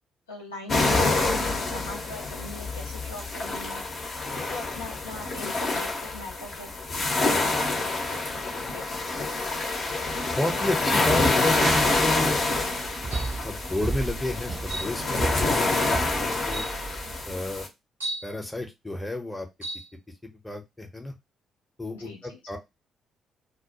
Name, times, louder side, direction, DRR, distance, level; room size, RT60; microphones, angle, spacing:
voice 1, 0.3-4.0 4.4-6.8 8.7-8.9 21.9-22.4, left 2 dB, 80° left, -1 dB, 0.5 m, -41 dB
sound 1, 0.7-17.7, left 2 dB, 45° left, 0.7 m, -27 dB
voice 2, 10.3-12.4 13.4-16.7 17.3-17.7 18.2-19.5 20.4-21.1 21.8-22.6, left 2 dB, 15° left, 4 dB, 0.7 m, -31 dB
sound 2, 11.5-17.3, right 3 dB, 30° right, 0.4 m, -34 dB
sound 3, 13.1-13.5 14.7-15.0 15.9-16.0 16.5-16.8 18.0-18.3 19.6-19.9, right 2 dB, 85° right, 0.8 m, -35 dB
2.2 x 2.1 x 2.8 m, 0.22 s
figure-of-eight pair, 40°, 0 cm